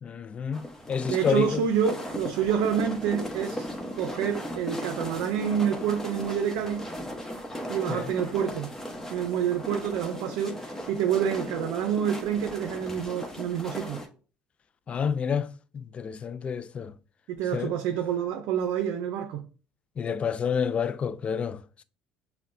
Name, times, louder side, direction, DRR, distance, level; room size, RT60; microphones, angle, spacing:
voice 1, 0.0-1.6 7.9-8.1 14.9-15.5 15.7-16.9 17.5-17.7 20.0-21.6, left 6 dB, 35° left, 0.3 m, -29 dB
sound 1, 0.5-14.1, equal, 10° left, 1.0 m, -37 dB
voice 2, 1.1-3.7 3.9-6.9 7.7-8.7 9.1-14.0 17.3-19.4, right 8 dB, 75° right, 0.5 m, -28 dB
5.7 x 2.2 x 2.6 m
supercardioid pair, 85°, 3 cm